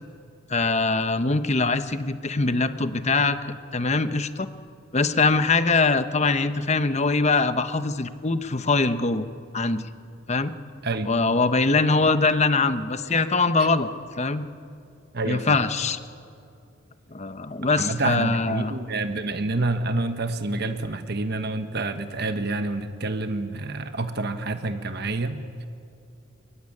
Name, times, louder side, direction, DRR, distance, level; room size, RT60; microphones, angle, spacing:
voice 1, 0.5-4.5 4.9-9.3 9.5-9.9 10.3-10.5 11.1-13.9 14.2-14.5 15.3-16.0 17.1-18.7, left 3 dB, 35° left, 11 dB, 1.0 m, -23 dB
voice 2, 15.1-15.6 17.7-25.6, right 2 dB, 55° right, 8 dB, 1.2 m, -28 dB
22.5 x 21.5 x 9.8 m, 2.5 s
head